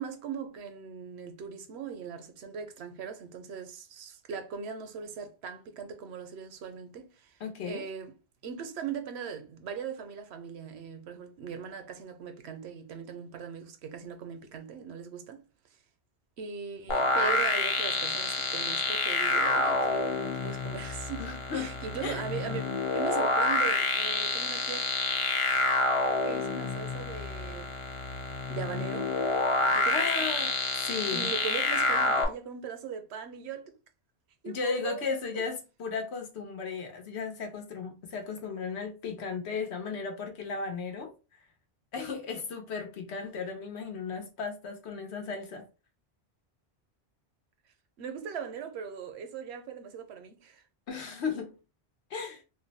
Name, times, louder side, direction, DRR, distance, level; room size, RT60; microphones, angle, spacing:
voice 1, 0.0-7.4 7.6-8.1 8.4-15.4 16.4-21.3 21.5-22.6 22.9-24.9 26.2-27.7 28.5-29.1 29.6-30.1 31.1-33.7 34.4-35.4 48.0-50.6, right 7 dB, 80° right, 0.9 m, -39 dB
voice 2, 7.4-7.9 21.2-22.3 29.9-31.3 34.4-41.1 41.9-45.7 50.9-51.6 52.1-52.4, left 5 dB, 90° left, 1.0 m, -35 dB
sound 1, 16.9-32.3, left 2 dB, 40° left, 0.5 m, -28 dB
2.6 x 2.1 x 3.9 m
omnidirectional pair, 1.1 m